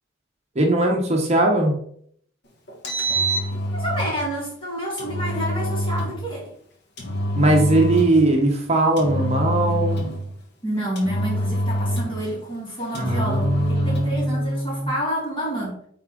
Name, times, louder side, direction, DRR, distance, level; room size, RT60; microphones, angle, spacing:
voice 1, 0.5-1.7 7.4-10.1 12.9-14.9, right 1 dB, 35° right, 1 dB, 1.0 m, -20 dB
Engine, 2.7-4.2 5.0-6.2 7.0-8.2 9.0-10.3 11.0-12.3 12.9-14.2, equal, 60° left, 1.5 m, -25 dB
voice 2, 3.7-6.5 10.6-15.8, right 1 dB, 25° left, -3 dB, 2.5 m, -29 dB
8.4 x 3.7 x 3.8 m, 0.63 s
head